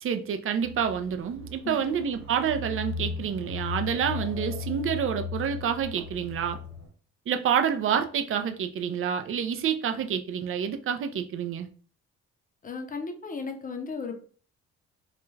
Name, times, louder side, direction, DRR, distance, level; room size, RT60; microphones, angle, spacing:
voice 1, 0.0-6.6 7.3-11.7, right 8 dB, 45° right, 0.4 m, -28 dB
sound 1, 0.6-6.9, left 5 dB, 90° right, 1.0 m, -37 dB
voice 2, 12.6-14.1, left 4 dB, 30° left, 0.6 m, -35 dB
2.4 x 2.2 x 3.1 m
cardioid pair, 90°, 30 cm